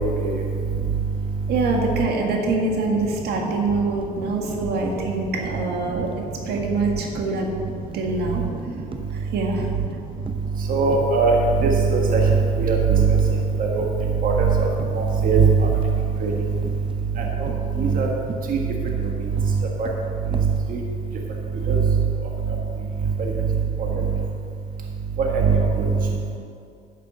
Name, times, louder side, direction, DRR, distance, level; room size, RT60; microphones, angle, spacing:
voice 1, 1.5-7.5 7.9-8.4 9.3-9.7, right 3 dB, 75° right, 1 dB, 1.7 m, -24 dB
sound 1, 3.8-4.0 4.3-5.0 5.4-6.3 6.5-6.9 7.2-10.0 10.2-11.2 11.6-12.0 12.3-12.5 12.9-13.5 13.8-15.2 15.7-16.1 16.6-17.1 17.4-20.6, right 4 dB, 30° right, 0.8 m, -39 dB
voice 2, 10.7-11.4 11.6-13.3 13.6-13.8 14.2-15.7 16.2-16.3 17.2-17.5 17.8-18.1 18.5-18.6 19.8-19.9 20.7-20.8 21.7-21.8 23.2-23.3 25.2-26.1, right 5 dB, 55° right, 0 dB, 1.6 m, -19 dB
10.5 x 6.7 x 7.1 m, 2.4 s
cardioid pair, 110°, 17 cm